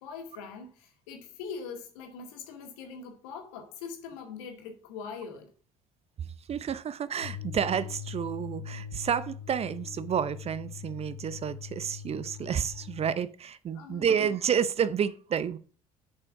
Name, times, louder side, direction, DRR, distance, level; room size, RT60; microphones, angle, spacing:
voice 1, 0.0-5.5 13.7-14.1, left 5 dB, 70° left, 1.9 m, -42 dB
voice 2, 6.5-15.6, right 8 dB, 35° right, 0.6 m, -30 dB
sound 1, 7.2-13.2, left 9 dB, 85° left, 1.3 m, -42 dB
7.1 x 5.5 x 5.7 m
figure-of-eight pair, 55°, 18 cm